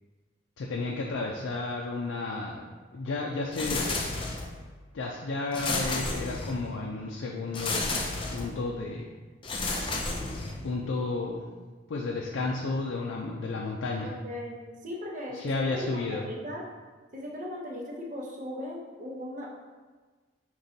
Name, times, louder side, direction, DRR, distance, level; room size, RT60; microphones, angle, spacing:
voice 1, 0.6-2.6 2.9-4.0 4.9-8.0 8.3-9.1 10.6-11.4 11.9-14.1 15.4-16.2, left 3 dB, 90° left, -1 dB, 0.4 m, -32 dB
sound 1, 3.5-4.6 5.5-6.7 7.5-8.6 9.4-10.7, left 3 dB, 25° left, 0.4 m, -32 dB
voice 2, 14.0-16.7 17.1-19.5, left 1 dB, 40° right, -2 dB, 0.7 m, -38 dB
5.1 x 3.0 x 2.7 m, 1.4 s
head